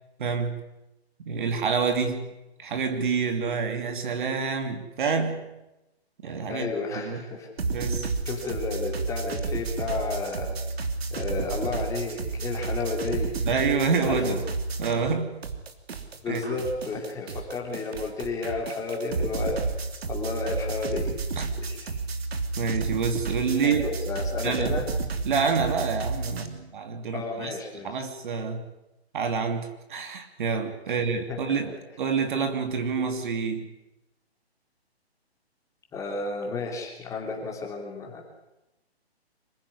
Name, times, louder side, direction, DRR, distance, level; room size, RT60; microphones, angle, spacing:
voice 1, 0.2-0.6 1.2-2.3 2.6-5.6 6.2-7.2 7.7-8.1 13.4-14.4 14.8-15.4 16.3-16.4 21.4-21.6 22.6-23.8 24.4-24.8 25.2-27.5 27.8-28.7 29.1-33.7, right 5 dB, 50° right, 7 dB, 2.9 m, -27 dB
voice 2, 6.5-7.5 8.2-10.6 11.1-13.3 14.1-14.4 16.2-19.7 20.1-21.1 21.6-22.0 23.6-24.9 27.1-27.9 31.3-31.6 35.9-38.2, left 4 dB, 10° left, 0 dB, 3.1 m, -32 dB
sound 1, 7.6-15.2 15.4-26.5, right 3 dB, 65° right, 3.1 m, -31 dB
26.0 x 16.0 x 9.9 m, 0.95 s
hypercardioid pair, 160°, 33 cm